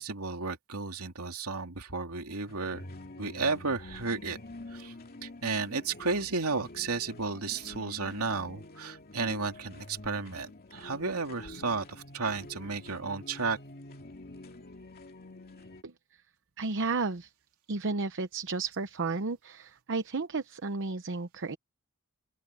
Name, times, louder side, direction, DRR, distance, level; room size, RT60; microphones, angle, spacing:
voice 1, 0.0-2.8 3.2-4.4 4.7-4.9 5.2-13.6, right 4 dB, 75° right, 2.8 m, -33 dB
sound 1, 2.5-15.8, left 2 dB, 45° left, 2.6 m, -48 dB
voice 2, 16.6-17.3 17.7-21.6, right 3 dB, 55° right, 0.9 m, -32 dB
open air
head